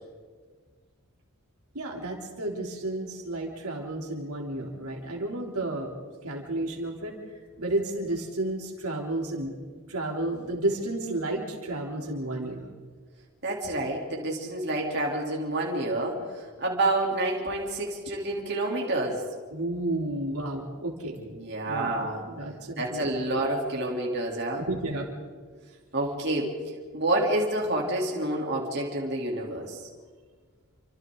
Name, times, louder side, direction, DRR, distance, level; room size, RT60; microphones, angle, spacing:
voice 1, 1.8-5.9 6.2-7.2 7.6-9.5 9.9-12.7 19.5-21.2 21.6-21.9 22.3-23.1 24.6-25.1, right 2 dB, 90° right, 0 dB, 3.5 m, -32 dB
voice 2, 13.4-19.2 21.2-22.2 22.8-24.7 25.9-26.6 26.9-29.9, right 1 dB, 50° right, -2 dB, 3.6 m, -28 dB
29.5 x 25.0 x 4.0 m, 1.6 s
head